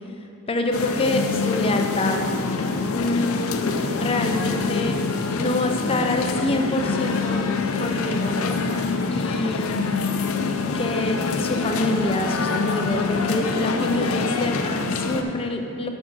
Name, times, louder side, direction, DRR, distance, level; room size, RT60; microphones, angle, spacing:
voice 1, 0.5-2.2 2.9-5.0 5.4-7.5 7.8-9.9 10.7-15.9, left 2 dB, 25° left, 4 dB, 0.6 m, -26 dB
sound 1, 0.7-15.2, left 4 dB, 70° left, 0.5 m, -25 dB
7.3 x 6.0 x 5.5 m, 2.7 s
head